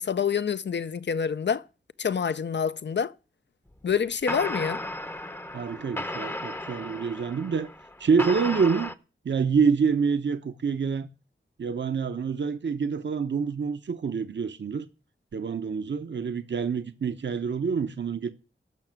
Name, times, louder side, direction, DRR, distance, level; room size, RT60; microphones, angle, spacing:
voice 1, 0.0-1.6 2.0-3.1 3.8-4.8, left 7 dB, 60° left, 0.6 m, -27 dB
sound 1, 3.7-3.9 4.3-8.9, left 1 dB, 10° left, 0.7 m, -35 dB
voice 2, 5.5-7.7 8.0-8.9 9.2-11.1 11.6-14.9 15.3-18.3, right 5 dB, 65° right, 0.8 m, -26 dB
13.5 x 6.0 x 9.2 m
wide cardioid pair, 95°, 20 cm